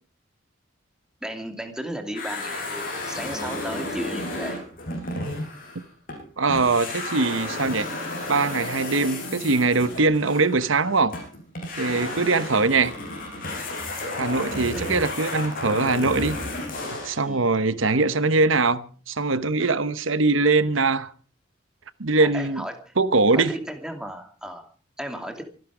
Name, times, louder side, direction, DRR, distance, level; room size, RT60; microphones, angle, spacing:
voice 1, 1.2-4.6 14.7-15.1 17.2-17.5 22.2-22.9 23.3-24.7 25.0-25.4, equal, 5° right, 2.6 m, -35 dB
sound 1, 2.1-6.2 6.5-17.3, left 2 dB, 45° left, 6.8 m, -32 dB
voice 2, 6.4-7.9 8.3-11.1 11.8-12.9 14.2-16.4 17.0-21.1 22.0-22.6 23.0-23.6, right 3 dB, 75° right, 1.0 m, -22 dB
24.5 x 11.5 x 4.9 m
head